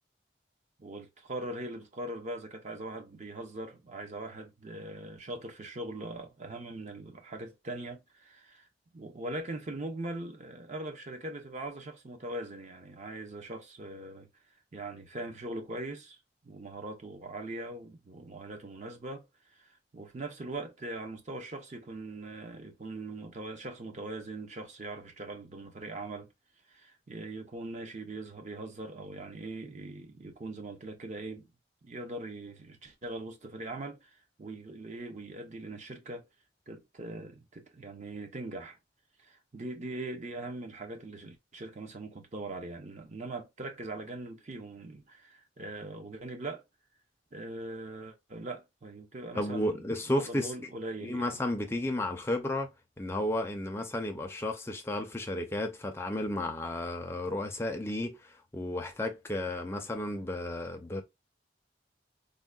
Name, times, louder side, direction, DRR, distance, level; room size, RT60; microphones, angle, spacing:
voice 1, 0.8-8.7 8.9-14.3 14.7-16.2 16.4-19.3 19.5-26.3 26.7-31.5 31.8-36.2 36.7-38.8 39.2-46.6 47.3-51.4, right 2 dB, 40° right, 0.6 m, -41 dB
voice 2, 49.3-50.5 51.0-52.7 53.0-61.0, left 1 dB, 15° left, 0.5 m, -33 dB
3.6 x 2.1 x 2.3 m
head